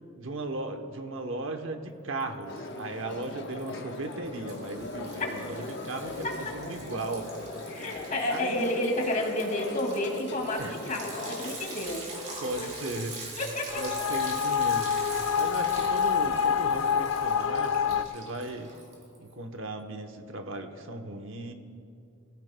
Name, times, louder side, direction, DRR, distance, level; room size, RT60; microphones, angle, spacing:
voice 1, 0.1-7.3 7.7-8.6 10.6-10.7 12.4-13.2 13.8-18.7 19.2-21.5, right 2 dB, 65° right, 5 dB, 0.9 m, -37 dB
Liquid, 2.2-2.8 3.1-19.3, right 2 dB, 35° right, 3.3 m, -44 dB
sound 1, 2.5-11.6, left 2 dB, 55° left, 1.0 m, -40 dB
voice 2, 7.7-12.7 13.0-13.1 13.4-14.1, left 1 dB, 35° left, 1 dB, 2.2 m, -31 dB
sound 2, 13.7-18.0, left 7 dB, 80° left, 0.5 m, -26 dB
23.5 x 15.5 x 2.2 m, 2.6 s
head